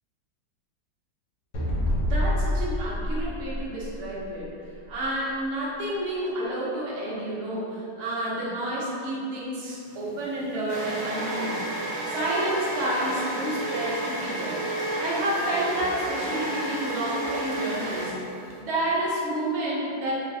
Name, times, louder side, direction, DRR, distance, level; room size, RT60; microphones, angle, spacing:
sound 1, 1.5-4.2, left 1 dB, 75° left, 1.2 m, -27 dB
voice 1, 1.9-4.5 4.9-11.6 12.1-14.6 15.0-18.3 18.5-20.1, right 1 dB, 90° right, -6 dB, 0.5 m, -30 dB
sound 2, 9.9-18.6, right 1 dB, 75° right, 0.8 m, -31 dB
3.0 x 2.5 x 2.5 m, 2.5 s
omnidirectional pair, 2.0 m